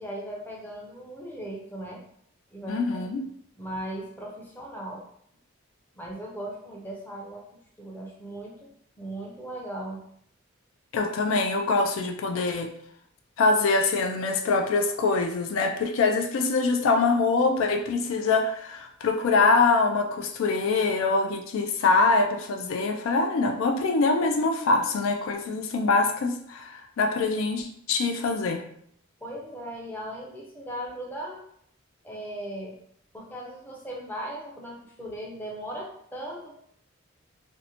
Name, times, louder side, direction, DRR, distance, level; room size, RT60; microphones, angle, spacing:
voice 1, 0.0-2.0 2.5-3.0 3.6-5.0 5.9-7.4 7.8-8.7 9.0-10.0 29.2-31.4 32.0-32.7 33.1-36.5, right 1 dB, 10° left, -2 dB, 0.5 m, -38 dB
voice 2, 2.7-3.2 10.9-12.7 13.4-28.6, left 3 dB, 80° left, 4 dB, 0.3 m, -24 dB
2.5 x 2.0 x 2.8 m, 0.67 s
head